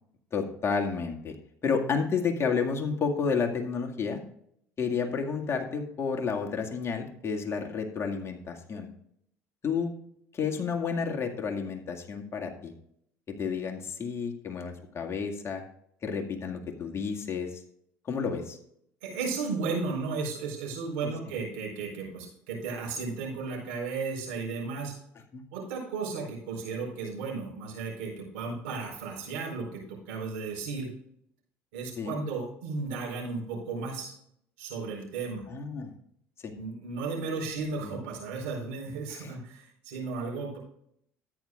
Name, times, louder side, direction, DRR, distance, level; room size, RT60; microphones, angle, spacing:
voice 1, 0.3-1.3 1.6-4.2 4.8-8.9 9.6-9.9 10.3-12.7 13.3-15.6 16.0-17.6 18.1-18.6 21.0-21.1 25.3-25.4 32.0-32.2 35.5-35.9 36.4-36.5 37.8-38.0 39.1-39.3, left 5 dB, 40° left, 2 dB, 2.0 m, -31 dB
voice 2, 19.0-24.9 25.5-30.9 31.7-34.1 34.6-35.4 36.5-40.6, right 4 dB, 80° right, -2 dB, 4.5 m, -34 dB
13.5 x 9.5 x 2.5 m, 0.71 s
hypercardioid pair, 70°, 7 cm